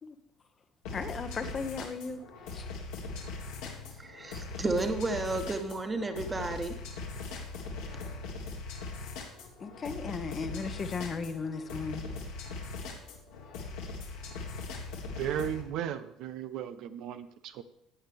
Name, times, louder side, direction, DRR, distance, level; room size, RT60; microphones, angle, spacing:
sound 1, 0.8-15.6, left 3 dB, 65° left, 1.9 m, -40 dB
voice 1, 0.9-2.2 2.5-2.7 9.6-12.1, left 4 dB, 35° left, 1.1 m, -36 dB
voice 2, 4.0-6.7, right 2 dB, 20° right, 1.4 m, -32 dB
voice 3, 15.2-17.6, right 10 dB, 60° right, 0.5 m, -35 dB
15.0 x 8.8 x 3.6 m
figure-of-eight pair, 55°, 0 cm